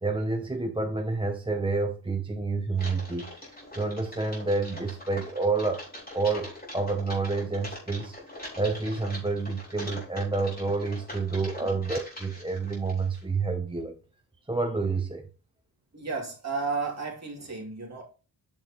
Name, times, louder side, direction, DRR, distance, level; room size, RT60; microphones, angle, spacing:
voice 1, 0.0-3.5 3.8-5.9 6.1-8.1 8.6-13.9 14.5-15.2, right 3 dB, 10° right, 0.6 m, -29 dB
Typing, 2.7-13.2, left 1 dB, 20° left, 4.1 m, -43 dB
voice 2, 15.9-18.0, right 4 dB, 35° right, 2.7 m, -33 dB
8.9 x 6.3 x 2.9 m
wide cardioid pair, 145°, 44 cm